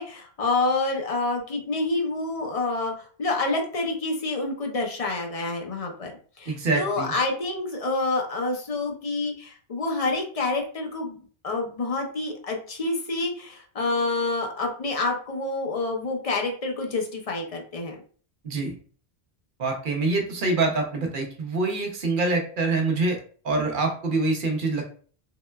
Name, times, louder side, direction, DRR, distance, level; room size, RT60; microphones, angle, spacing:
voice 1, 0.0-2.9 3.2-6.1 6.4-11.2 11.4-18.0, left 3 dB, 45° left, 2 dB, 0.5 m, -28 dB
voice 2, 6.5-7.1 18.4-18.7 19.6-24.8, right 3 dB, 55° right, 2 dB, 0.8 m, -25 dB
3.7 x 2.1 x 2.2 m, 0.43 s
omnidirectional pair, 1.1 m